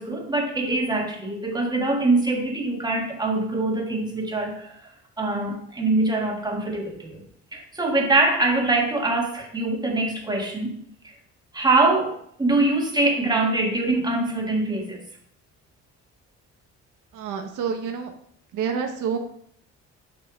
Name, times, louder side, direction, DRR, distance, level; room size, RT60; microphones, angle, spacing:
voice 1, 0.0-4.9 5.2-7.2 7.5-10.8 11.5-15.1, right 2 dB, 15° right, 1 dB, 1.4 m, -23 dB
voice 2, 17.1-18.1 18.5-19.2, right 6 dB, 85° right, 4 dB, 0.9 m, -28 dB
6.1 x 3.2 x 5.8 m, 0.68 s
cardioid pair, 90°, 30 cm